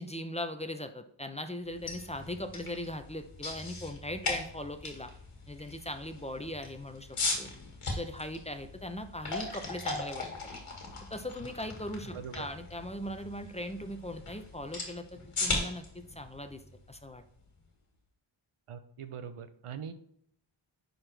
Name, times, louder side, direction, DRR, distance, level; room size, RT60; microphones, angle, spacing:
voice 1, 0.0-5.1 5.5-7.1 7.4-7.5 7.9-10.3 11.1-16.6 16.9-17.2, left 1 dB, 15° left, 7 dB, 0.7 m, -39 dB
sound 1, 1.7-17.6, left 3 dB, 90° left, 1.8 m, -39 dB
voice 2, 12.1-12.5 18.7-19.9, right 7 dB, 85° right, 10 dB, 0.8 m, -42 dB
10.5 x 4.0 x 3.3 m, 0.68 s
wide cardioid pair, 65°, 50 cm